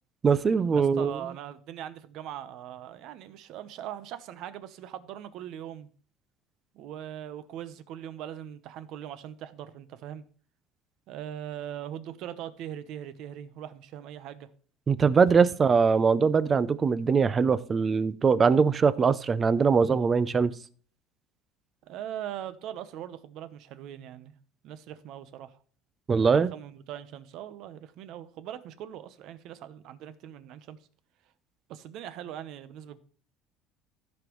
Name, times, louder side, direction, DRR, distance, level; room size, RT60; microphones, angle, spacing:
voice 1, 0.2-1.2 14.9-20.5 26.1-26.5, right 5 dB, 25° right, 0.5 m, -22 dB
voice 2, 0.7-5.9 6.7-10.2 11.1-14.5 15.4-15.5 21.8-24.4 24.6-25.6 26.3-30.8 31.7-33.0, right 10 dB, 55° right, 0.9 m, -41 dB
15.0 x 5.3 x 3.1 m
cardioid pair, 145°, 0 cm